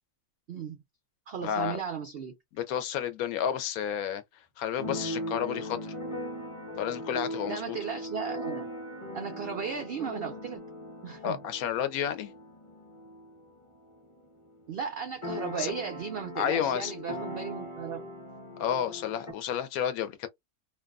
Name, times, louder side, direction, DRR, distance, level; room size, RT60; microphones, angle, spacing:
voice 1, 0.5-0.8 1.3-2.4 7.5-8.7 9.1-10.7 11.0-11.4 14.7-18.1, right 7 dB, 80° right, 0.5 m, -36 dB
voice 2, 1.4-1.8 2.5-4.2 4.6-5.9 6.8-7.8 11.2-12.3 15.5-15.7 16.4-16.9 18.6-20.3, left 9 dB, 75° left, 1.0 m, -31 dB
Keyboard (musical), 4.8-14.3 14.6-14.7 14.9-19.3, equal, 25° left, 0.7 m, -39 dB
2.5 x 2.3 x 2.3 m
omnidirectional pair, 1.6 m